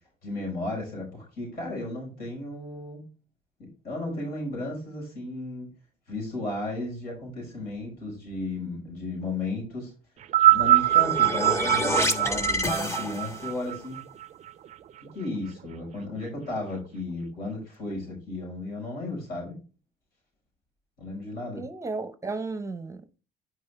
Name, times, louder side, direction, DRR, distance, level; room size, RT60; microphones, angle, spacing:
voice 1, 0.2-3.0 3.6-5.7 6.1-9.9 10.5-14.0 15.1-19.6 21.0-21.6, left 2 dB, 65° left, 5.0 m, -34 dB
sound 1, 10.2-14.7 15.6-15.7, right 15 dB, 45° right, 0.4 m, -23 dB
sound 2, 10.6-13.6, left 1 dB, 15° left, 1.2 m, -28 dB
voice 2, 21.6-23.2, right 3 dB, 20° right, 0.8 m, -34 dB
9.6 x 5.3 x 3.4 m
cardioid pair, 110°, 17 cm